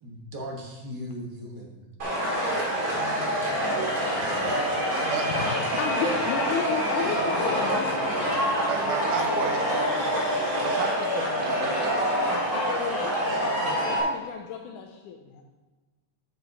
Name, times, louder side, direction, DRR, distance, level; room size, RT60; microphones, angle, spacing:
voice 1, 0.0-2.2, equal, 55° right, -1 dB, 1.2 m, -38 dB
sound 1, 2.0-14.0, equal, 35° right, 2.0 m, -26 dB
voice 2, 3.6-4.1 4.6-4.8 5.1-8.0 10.3-10.4 12.5-15.4, left 6 dB, 85° left, 2 dB, 2.1 m, -34 dB
voice 3, 8.7-9.7 10.6-12.0 12.7-12.8 13.9-14.0, right 7 dB, 80° right, 6 dB, 2.3 m, -33 dB
8.0 x 7.6 x 4.0 m, 1.2 s
omnidirectional pair, 3.5 m